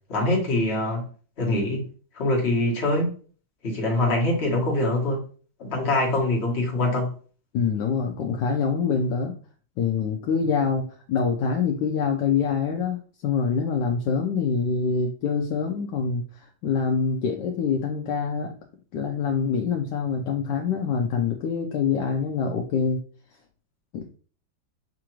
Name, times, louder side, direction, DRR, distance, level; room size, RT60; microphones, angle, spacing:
voice 1, 0.1-1.0 1.4-1.9 2.1-3.1 3.6-5.2 5.6-7.1, left 1 dB, 35° left, -2 dB, 1.3 m, -24 dB
voice 2, 7.5-9.4 9.8-16.2 16.6-18.5 18.9-23.0 23.9-24.1, left 5 dB, 75° left, 1 dB, 1.1 m, -25 dB
6.7 x 2.5 x 2.9 m, 0.42 s
omnidirectional pair, 2.2 m